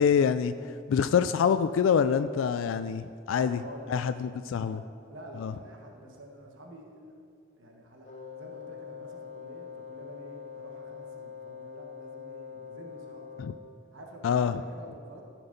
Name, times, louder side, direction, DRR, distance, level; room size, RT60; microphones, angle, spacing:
voice 1, 0.0-3.6 3.9-4.8 5.4-5.5 13.4-13.5 14.2-14.6, left 7 dB, 90° left, 11 dB, 0.3 m, -26 dB
voice 2, 3.3-4.1 4.6-4.8 5.1-7.2 7.6-13.6 13.9-15.2, right 1 dB, 85° right, 1 dB, 1.3 m, -48 dB
Wind instrument woodwind instrument, 8.0-13.8, left 6 dB, 35° left, 0.9 m, -44 dB
13.5 x 6.1 x 5.2 m, 2.3 s
head